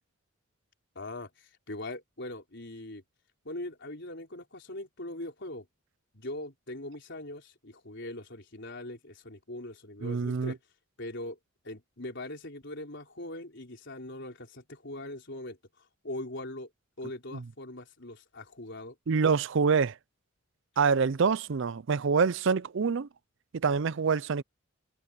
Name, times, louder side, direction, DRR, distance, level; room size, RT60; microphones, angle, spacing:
voice 1, 0.9-3.0 3.4-5.7 6.1-10.6 11.0-11.4 11.6-15.6 16.0-16.7 17.0-18.9, left 1 dB, 55° left, 4.6 m, -41 dB
voice 2, 10.0-10.5 17.3-17.4 19.1-20.0 20.8-23.1 23.5-24.4, right 5 dB, 60° right, 0.5 m, -26 dB
head